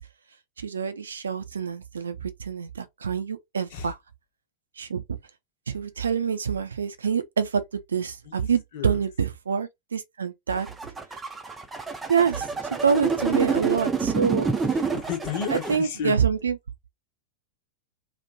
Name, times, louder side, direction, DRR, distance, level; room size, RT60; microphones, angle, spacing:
voice 1, 0.6-4.0 4.8-5.2 5.7-10.7 12.1-14.5 15.5-16.6, right 6 dB, 70° right, 0.6 m, -26 dB
voice 2, 8.2-9.0 14.9-16.2, left 8 dB, 55° left, 1.1 m, -32 dB
sound 1, 10.5-15.8, right 5 dB, 10° right, 0.7 m, -27 dB
3.0 x 2.5 x 4.0 m
figure-of-eight pair, 90°, 0 cm